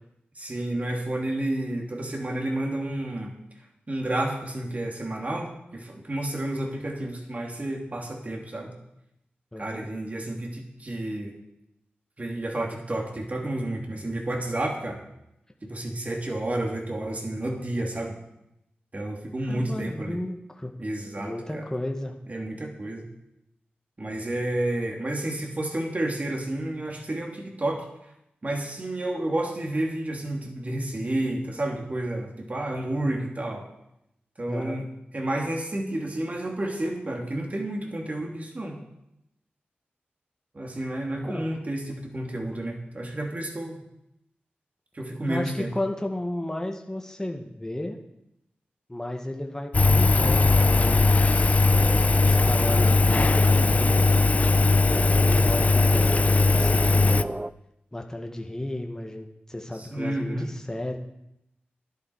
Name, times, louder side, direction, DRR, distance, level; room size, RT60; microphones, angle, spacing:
voice 1, 0.4-3.3 3.9-8.7 9.6-11.3 12.2-15.0 15.7-18.2 18.9-20.2 20.8-21.7 22.3-23.1 24.0-27.9 28.4-33.7 34.4-34.8 35.1-38.8 40.5-43.8 44.9-45.7 52.5-54.0 59.8-60.5, right 1 dB, 40° right, 1 dB, 2.9 m, -31 dB
voice 2, 9.5-9.9 19.5-20.7 21.2-22.1 34.5-34.8 41.2-41.5 45.3-48.0 48.9-51.6 52.2-53.8 54.9-57.3 57.9-61.0, left 1 dB, 15° left, 3 dB, 1.7 m, -33 dB
Engine, 49.7-57.2, left 3 dB, 40° left, 0.5 m, -19 dB
sound 1, 51.7-57.5, right 1 dB, 15° right, 0.4 m, -34 dB
12.5 x 11.5 x 4.9 m, 0.84 s
cardioid pair, 60°, 4 cm